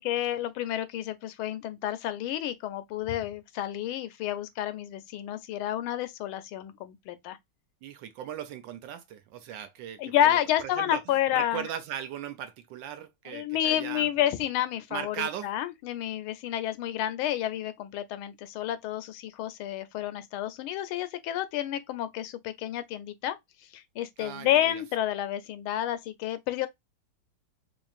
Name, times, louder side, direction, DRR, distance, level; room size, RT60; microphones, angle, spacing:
voice 1, 0.0-7.4 10.0-11.6 13.3-23.4 23.7-26.7, left 12 dB, 85° left, 1.5 m, -30 dB
voice 2, 7.8-14.1 14.9-15.5 24.2-24.8, right 9 dB, 75° right, 1.2 m, -38 dB
4.5 x 2.8 x 2.4 m
omnidirectional pair, 2.3 m